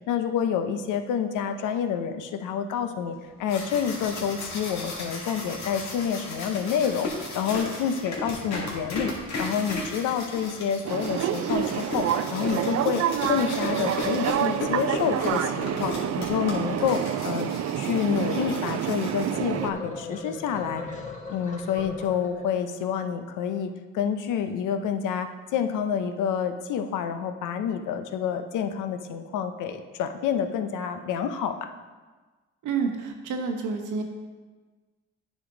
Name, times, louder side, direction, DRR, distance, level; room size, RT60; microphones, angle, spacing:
voice 1, 0.1-7.1 7.3-9.1 9.4-12.0 12.3-20.8 21.3-31.7, left 7 dB, 85° left, 8 dB, 0.7 m, -28 dB
sound 1, 3.2-19.7, left 2 dB, 65° left, 2.2 m, -35 dB
sound 2, 10.8-19.7, right 10 dB, 55° right, 0.4 m, -28 dB
sound 3, 19.2-22.9, left 3 dB, 25° left, 1.3 m, -39 dB
voice 2, 32.6-34.0, right 5 dB, 85° right, 4 dB, 1.2 m, -29 dB
9.2 x 5.3 x 3.8 m, 1.3 s
cardioid pair, 90°, 30 cm